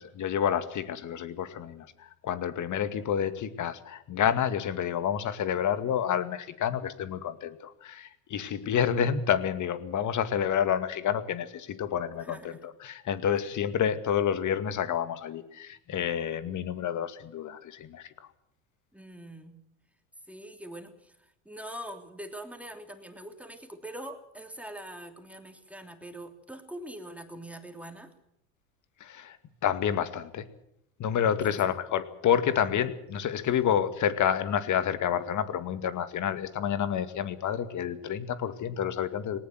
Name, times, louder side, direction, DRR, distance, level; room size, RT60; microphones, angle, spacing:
voice 1, 0.0-18.1 29.0-29.4 29.6-30.5 31.0-39.4, left 9 dB, 45° left, 11 dB, 2.2 m, -29 dB
voice 2, 8.4-8.8 12.2-12.6 18.9-19.6 20.3-28.1 31.4-31.6 33.4-33.5, right 1 dB, 5° right, 5 dB, 3.2 m, -43 dB
19.5 x 18.5 x 7.8 m, 0.75 s
hypercardioid pair, 85°, 42 cm